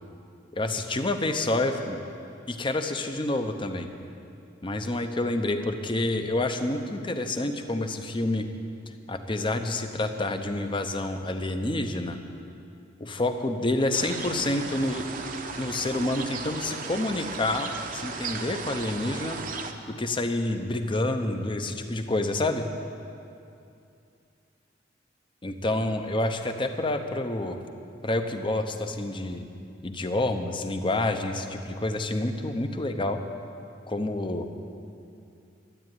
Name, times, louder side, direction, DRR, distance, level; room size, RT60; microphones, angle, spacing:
voice 1, 0.5-2.0 2.5-3.9 4.6-8.5 8.9-12.2 13.0-15.0 15.6-19.4 19.9-22.7 25.4-27.6 28.0-29.5 29.8-33.2 33.9-34.5, left 2 dB, 25° left, 6 dB, 0.8 m, -28 dB
sound 1, 13.9-19.7, right 4 dB, 45° right, 0.9 m, -36 dB
12.5 x 9.0 x 9.2 m, 2.6 s
head